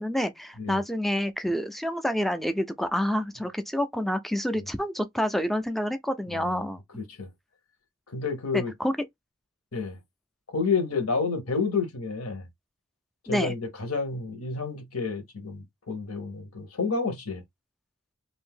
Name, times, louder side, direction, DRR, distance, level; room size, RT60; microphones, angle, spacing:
voice 1, 0.0-6.8 8.5-8.9 13.3-13.5, equal, ahead, 0.3 m, -28 dB
voice 2, 6.3-6.6 6.9-7.3 8.1-8.7 9.7-10.0 10.5-12.5 13.3-17.4, left 4 dB, 80° left, 1.1 m, -30 dB
2.6 x 2.6 x 3.6 m
head